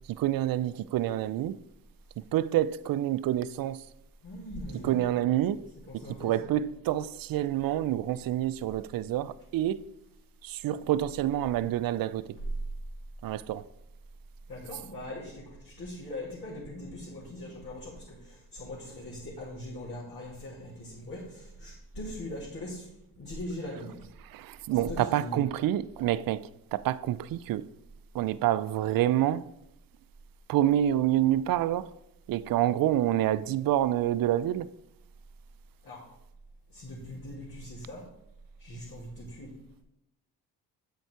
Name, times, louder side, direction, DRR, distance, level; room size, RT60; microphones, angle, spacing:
voice 1, 0.2-1.6 2.3-3.8 4.8-5.6 5.9-9.8 10.4-12.3 13.2-13.7 24.3-26.4 26.7-27.6 28.1-29.4 30.5-31.9 32.3-34.7, right 12 dB, 50° right, 0.5 m, -27 dB
voice 2, 4.2-5.0 5.9-6.5 14.5-22.9 23.2-23.9 24.7-25.4 35.8-36.0 36.7-38.1 38.6-39.5, left 1 dB, 50° left, 2.9 m, -41 dB
7.8 x 4.7 x 4.6 m
hypercardioid pair, 55°, 46 cm